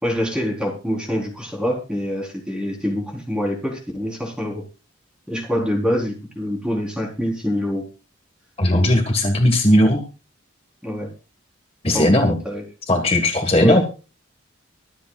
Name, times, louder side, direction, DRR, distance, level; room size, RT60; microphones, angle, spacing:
voice 1, 0.0-4.6 5.3-7.8 10.8-11.1 11.9-12.6 13.6-13.8, equal, 5° right, -1 dB, 4.0 m, -25 dB
voice 2, 8.6-10.0 11.8-12.3 12.9-13.8, left 1 dB, 30° left, 3 dB, 1.7 m, -17 dB
24.5 x 8.4 x 2.5 m, 0.34 s
head